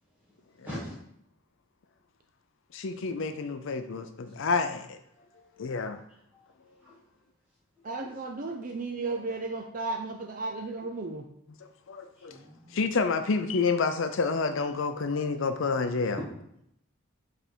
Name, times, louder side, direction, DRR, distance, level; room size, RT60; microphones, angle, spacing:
voice 1, 0.6-0.9 4.3-4.4 5.1-5.5 6.3-6.5 6.8-7.0 12.1-12.8, equal, 10° right, -9 dB, 1.4 m, -43 dB
voice 2, 2.7-5.0 5.6-6.0 8.0-8.1 11.9-12.4 12.7-16.2, left 4 dB, 60° left, 8 dB, 0.5 m, -29 dB
voice 3, 7.8-11.2, right 3 dB, 35° right, 3 dB, 0.5 m, -34 dB
7.7 x 3.3 x 4.5 m, 0.74 s
head